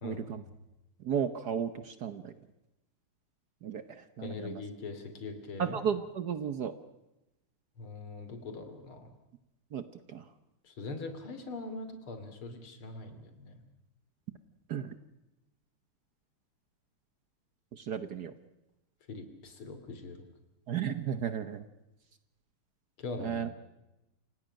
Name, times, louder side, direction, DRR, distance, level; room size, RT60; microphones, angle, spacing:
voice 1, 0.0-0.4 1.0-2.3 3.6-4.6 5.6-6.7 9.7-9.8 10.1-10.2 14.7-14.9 17.8-18.3 20.7-21.6 23.2-23.5, right 8 dB, 55° right, 12 dB, 1.4 m, -34 dB
voice 2, 4.2-5.8 7.8-9.1 10.7-13.6 19.1-20.2 23.0-23.5, left 3 dB, 75° left, 8 dB, 3.6 m, -42 dB
28.5 x 17.5 x 6.5 m, 0.95 s
omnidirectional pair, 2.3 m